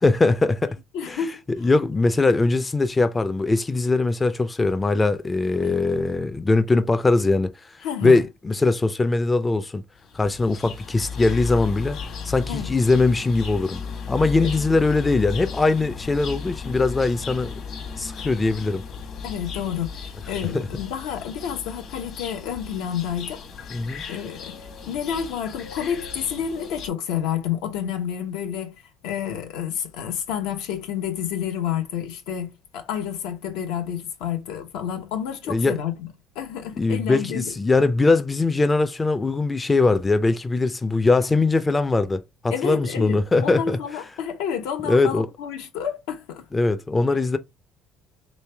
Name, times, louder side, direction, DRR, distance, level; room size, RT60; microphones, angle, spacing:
voice 1, 0.0-0.8 1.1-1.2 1.6-7.7 8.0-9.8 10.1-12.0 12.2-13.8 14.1-17.6 18.0-18.8 20.5-20.7 23.7-24.1 35.5-35.8 36.8-43.8 44.8-45.3 46.5-47.4, left 3 dB, 20° left, 0.4 m, -21 dB
voice 2, 0.9-1.4 5.6-5.8 7.8-8.2 12.5-12.7 14.4-14.5 19.2-23.4 24.1-36.1 36.3-37.5 42.5-46.4, left 9 dB, 90° left, 0.9 m, -29 dB
sound 1, 10.0-26.9, left 6 dB, 55° left, 1.1 m, -35 dB
3.3 x 3.2 x 3.3 m
cardioid pair, 110°, 0 cm